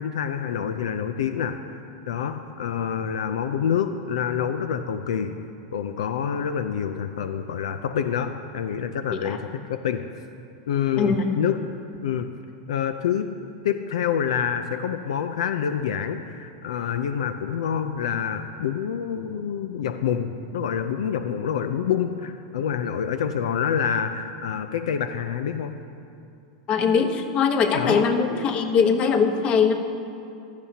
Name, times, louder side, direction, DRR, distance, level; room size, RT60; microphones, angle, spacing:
voice 1, 0.0-1.6 2.1-5.3 5.7-10.1 10.7-11.6 12.0-12.3 12.7-13.3 13.6-25.7 27.7-28.1, left 8 dB, 85° left, 9 dB, 0.5 m, -27 dB
voice 2, 11.0-11.3 26.7-29.7, left 5 dB, 35° left, 6 dB, 1.0 m, -21 dB
16.0 x 12.5 x 2.8 m, 2.6 s
supercardioid pair, 125°, 3 cm